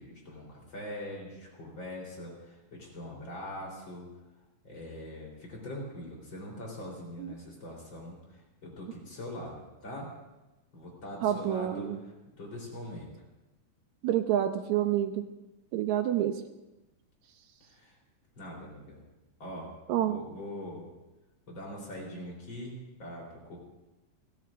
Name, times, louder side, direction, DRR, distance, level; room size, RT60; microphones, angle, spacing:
voice 1, 0.0-4.1 4.6-10.1 10.7-13.1 17.6-17.9 18.4-19.0 19.4-19.7 20.0-20.9 21.5-23.6, left 1 dB, 35° left, -2 dB, 4.3 m, -42 dB
voice 2, 11.2-12.0 14.0-15.2 15.7-16.4 19.9-20.2, right 11 dB, 75° right, 8 dB, 1.8 m, -28 dB
29.5 x 13.5 x 2.5 m, 1.0 s
omnidirectional pair, 3.9 m